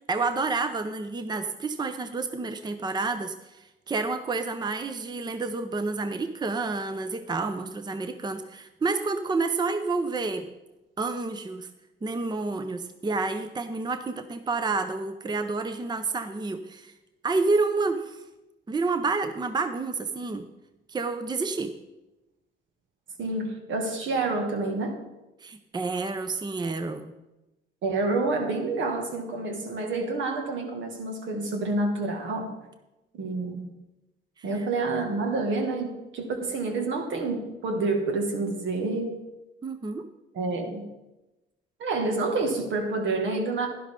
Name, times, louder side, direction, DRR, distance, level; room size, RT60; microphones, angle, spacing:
voice 1, 0.1-10.5 11.0-11.7 12.0-16.9 17.2-18.2 18.7-20.5 20.9-21.7 25.4-27.1 34.4-34.7 39.6-40.1, right 3 dB, 20° right, 9 dB, 0.7 m, -29 dB
voice 2, 23.2-25.0 27.8-32.5 33.1-33.6 34.4-39.1 40.3-40.8 41.8-43.7, right 3 dB, 75° right, 3 dB, 2.1 m, -28 dB
11.5 x 11.5 x 3.8 m, 1.0 s
cardioid pair, 90°, 20 cm